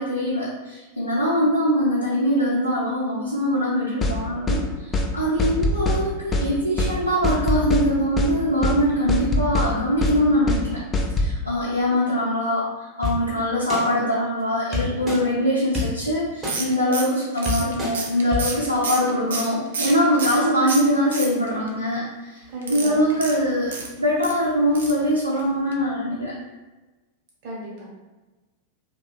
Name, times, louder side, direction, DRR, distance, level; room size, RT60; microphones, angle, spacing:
voice 1, 0.0-10.8 11.2-12.7 13.0-22.4 22.7-26.3, equal, 90° left, -7 dB, 0.4 m, -22 dB
sound 1, 4.0-4.2 4.5-4.6 4.9-5.1 5.4-6.0 6.3-6.5 6.8-6.9 7.2-7.9 8.2-8.3 8.6-8.8 9.1-9.7 10.0-10.2 10.5-10.6 10.9-11.3, left 1 dB, 20° left, 0.3 m, -22 dB
sound 2, 13.0-13.1 13.7-13.8 14.7-15.2 15.7-15.9 16.4-16.5 17.1-17.2 17.5-17.9 18.3-18.4, left 3 dB, 15° right, 0.7 m, -26 dB
sound 3, 16.5-20.4 20.7-21.7 22.6-24.4 24.7-25.1 25.3-25.4 25.7-25.8, right 4 dB, 65° right, 0.3 m, -30 dB
voice 2, 22.5-23.0 27.4-27.9, right 1 dB, 45° right, -4 dB, 0.9 m, -34 dB
2.7 x 2.1 x 2.4 m, 1.2 s
figure-of-eight pair, 90°, 0 cm